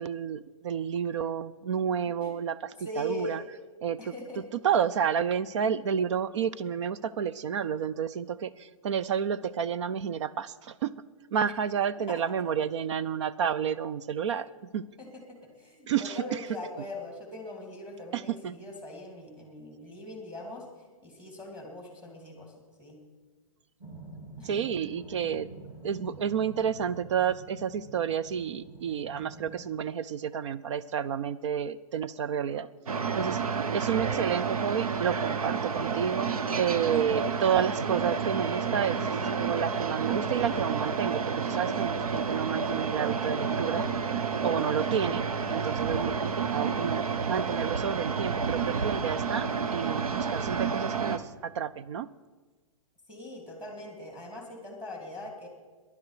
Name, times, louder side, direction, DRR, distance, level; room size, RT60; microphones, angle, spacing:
voice 1, 0.0-3.4 3.8-4.1 4.6-10.9 11.3-14.5 14.7-14.8 15.9-16.4 18.1-18.6 24.4-25.5 25.8-32.7 33.1-39.1 39.4-43.9 44.4-52.1, right 8 dB, 55° right, 16 dB, 0.5 m, -30 dB
voice 2, 2.8-3.5 4.0-4.4 12.1-12.2 15.0-20.7 21.0-22.5 22.8-23.0 24.4-24.6 53.1-55.5, left 1 dB, 5° right, 2 dB, 2.7 m, -41 dB
sound 1, 23.8-29.6, right 3 dB, 25° right, 3.2 m, -47 dB
sound 2, 32.9-51.2, right 5 dB, 85° right, 1.0 m, -30 dB
19.0 x 10.5 x 4.9 m, 1.3 s
hypercardioid pair, 145°, 18 cm